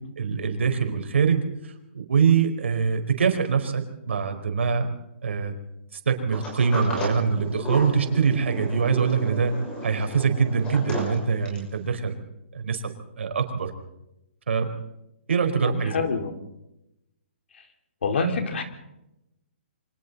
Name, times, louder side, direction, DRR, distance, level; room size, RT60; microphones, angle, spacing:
voice 1, 0.2-4.9 5.2-5.5 5.9-9.5 9.8-12.1 12.5-13.7 14.5-14.7 15.3-16.0, right 6 dB, 80° right, 5 dB, 4.5 m, -24 dB
Sliding door, 6.3-11.8, equal, 15° left, 6.4 m, -34 dB
voice 2, 15.6-16.3 17.5-17.6 18.0-18.6, left 3 dB, 70° left, 5 dB, 3.8 m, -27 dB
29.0 x 24.5 x 4.2 m, 0.88 s
hypercardioid pair, 165°, 6 cm